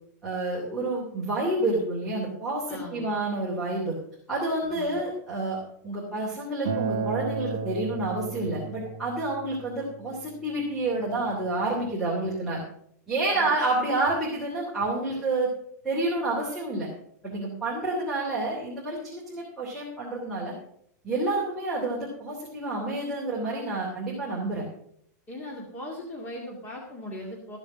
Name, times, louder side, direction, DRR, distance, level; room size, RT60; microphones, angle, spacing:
voice 1, 0.2-4.0 4.3-12.6 13.1-15.5 15.8-16.9 17.2-20.5 21.0-24.7, right 2 dB, ahead, -9 dB, 2.7 m, -29 dB
voice 2, 2.7-3.2 4.6-5.0 13.3-13.6 25.3-27.6, left 1 dB, 15° left, -1 dB, 2.1 m, -39 dB
Acoustic guitar, 6.7-11.9, right 5 dB, 55° right, 2.0 m, -34 dB
14.5 x 7.2 x 6.1 m, 0.68 s
supercardioid pair, 170°, 9 cm